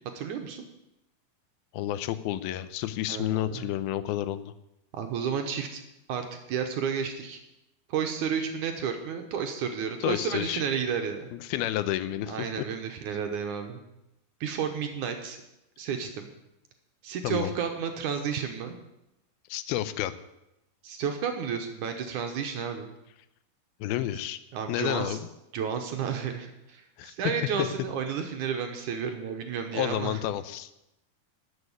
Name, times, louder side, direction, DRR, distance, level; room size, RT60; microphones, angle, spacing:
voice 1, 0.2-0.6 3.1-3.7 4.9-5.8 6.1-7.4 7.9-11.3 12.3-13.8 14.4-15.4 15.8-16.3 17.0-18.8 20.8-22.9 24.5-25.2 25.5-30.2, right 7 dB, 65° right, 5 dB, 2.2 m, -32 dB
voice 2, 1.7-4.5 10.0-10.6 11.3-12.6 17.2-17.5 19.5-20.1 23.8-24.4 24.7-25.2 27.0-27.1 27.6-27.7 29.7-30.7, left 13 dB, 85° left, 13 dB, 2.6 m, -30 dB
13.0 x 7.1 x 9.6 m, 0.89 s
omnidirectional pair, 4.3 m